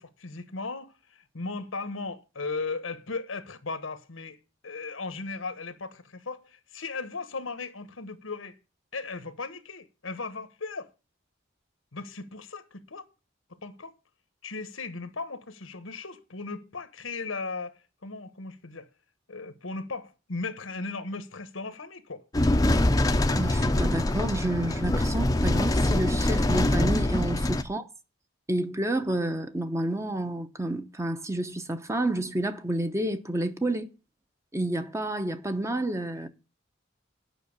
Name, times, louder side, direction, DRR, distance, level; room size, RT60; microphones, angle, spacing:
voice 1, 0.0-8.6 8.9-10.9 11.9-13.1 13.6-13.9 14.4-18.9 19.3-22.3 36.1-36.2, left 3 dB, 85° left, 1.3 m, -37 dB
sound 1, 22.3-27.6, left 1 dB, 20° left, 0.6 m, -24 dB
voice 2, 23.3-27.9 28.5-33.9 34.5-36.3, right 1 dB, 15° right, 0.8 m, -29 dB
9.3 x 5.7 x 6.9 m
head